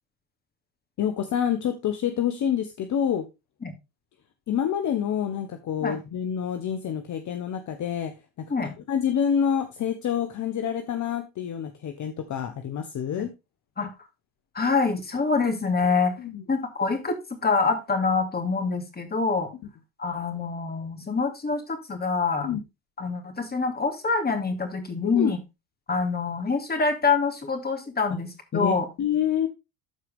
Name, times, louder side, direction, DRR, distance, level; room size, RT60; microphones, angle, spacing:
voice 1, 1.0-3.2 4.5-8.1 8.6-13.3 16.2-16.4 22.4-22.6 25.0-25.3 28.5-29.5, left 8 dB, 45° left, 8 dB, 1.2 m, -27 dB
voice 2, 14.5-16.1 16.5-19.5 20.0-22.5 23.0-25.4 25.9-28.8, left 4 dB, 20° left, 5 dB, 2.7 m, -25 dB
13.0 x 4.7 x 3.6 m, 0.25 s
supercardioid pair, 90°, 42 cm